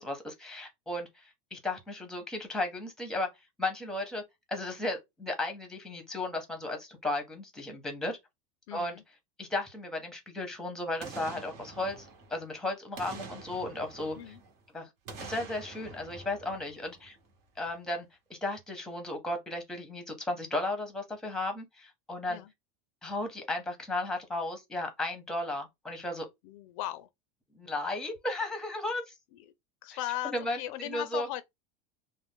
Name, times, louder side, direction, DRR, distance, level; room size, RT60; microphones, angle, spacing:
voice 1, 0.0-3.3 3.6-4.2 4.5-8.2 8.7-9.0 9.4-14.2 14.7-14.9 15.2-17.2 17.6-22.4 23.0-26.3 27.5-29.1 30.2-31.3, left 2 dB, 5° left, 0.8 m, -35 dB
voice 2, 8.7-9.0 14.2-14.4 22.3-22.5 26.4-27.1 29.3-29.4 29.8-31.4, left 14 dB, 70° left, 0.4 m, -37 dB
Boom, 11.0-12.5 13.0-14.6 15.1-17.3 17.7-17.8, right 4 dB, 60° right, 1.0 m, -46 dB
2.5 x 2.1 x 3.5 m
supercardioid pair, 150°, 18 cm